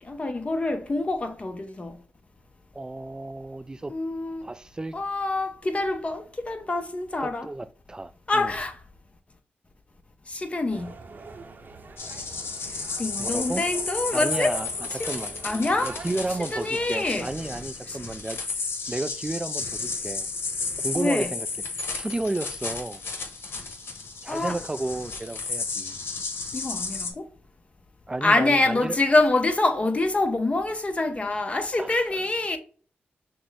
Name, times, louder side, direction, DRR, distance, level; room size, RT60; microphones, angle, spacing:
voice 1, 0.0-2.0 3.9-4.5 4.9-7.5 8.3-8.8 10.3-10.9 13.0-14.6 15.0-15.1 15.4-15.9 16.5-17.3 17.9-18.0 21.0-21.3 24.3-24.6 26.5-27.3 28.2-32.6, left 2 dB, 30° left, 0.7 m, -25 dB
voice 2, 2.7-3.9 4.4-4.9 7.2-8.5 13.2-13.6 14.1-14.7 15.0-15.3 15.8-18.4 18.9-20.3 20.8-21.5 21.9-23.0 24.2-26.0 28.1-29.0 31.8-32.2, right 2 dB, 20° right, 0.3 m, -32 dB
sound 1, 10.7-17.0, right 4 dB, 50° right, 0.7 m, -43 dB
sound 2, 12.0-27.1, left 4 dB, 70° left, 1.0 m, -33 dB
6.0 x 2.1 x 3.4 m
cardioid pair, 70°, 4 cm